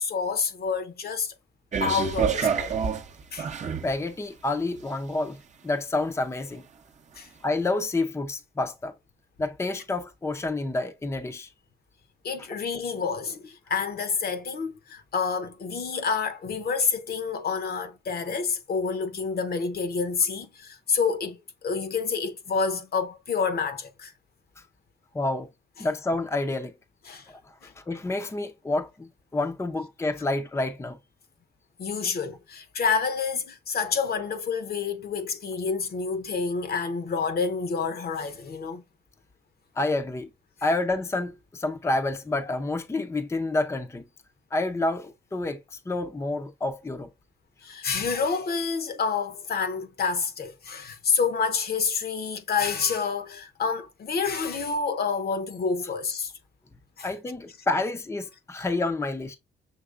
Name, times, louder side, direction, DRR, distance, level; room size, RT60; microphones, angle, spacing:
voice 1, 0.0-1.3 1.8-2.7 3.3-3.5 7.2-7.3 12.2-24.1 27.1-27.3 27.6-27.7 31.8-38.8 47.6-56.3 57.0-57.1, left 5 dB, 50° left, 0.8 m, -28 dB
sound 1, 1.7-4.0 4.7-4.8, right 6 dB, 35° right, 0.7 m, -27 dB
voice 2, 3.8-6.6 7.4-8.9 9.4-11.5 25.1-25.5 25.8-26.7 27.3-31.0 39.8-40.3 40.6-44.0 44.5-47.1 57.0-59.4, left 2 dB, 15° left, 0.5 m, -29 dB
6.6 x 2.9 x 2.4 m
cardioid pair, 90°, 20 cm